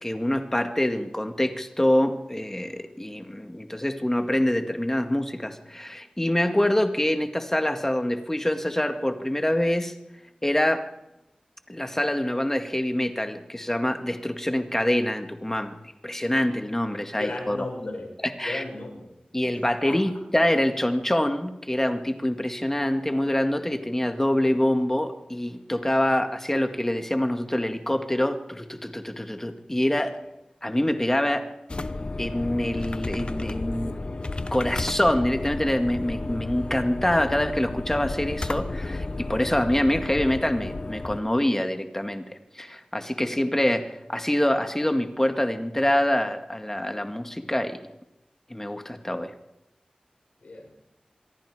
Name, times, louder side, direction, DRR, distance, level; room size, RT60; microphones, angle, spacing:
voice 1, 0.0-9.9 10.4-10.9 11.7-15.8 16.0-17.7 18.2-18.6 19.3-30.2 30.6-31.5 32.2-34.0 34.5-42.2 42.6-47.8 48.5-49.3, left 1 dB, 15° left, 6 dB, 2.0 m, -25 dB
voice 2, 17.2-18.1 18.4-19.1 19.8-20.0 50.4-50.7, left 2 dB, 90° left, 0 dB, 7.1 m, -34 dB
sound 1, 31.7-41.2, left 2 dB, 45° left, 1.0 m, -32 dB
26.0 x 22.5 x 5.0 m, 0.90 s
wide cardioid pair, 70°, 2 cm